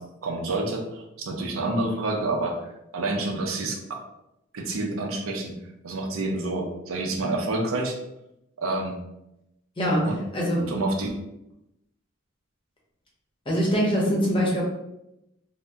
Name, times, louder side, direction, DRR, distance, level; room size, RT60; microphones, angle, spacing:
voice 1, 0.0-4.0 4.5-5.5 5.8-8.0 8.6-8.9 10.0-10.2 10.7-11.1, right 2 dB, 80° right, 2 dB, 0.5 m, -28 dB
voice 2, 9.8-10.1 10.3-10.7 13.5-14.6, equal, 25° left, -3 dB, 0.7 m, -23 dB
2.6 x 2.1 x 3.4 m, 0.86 s
head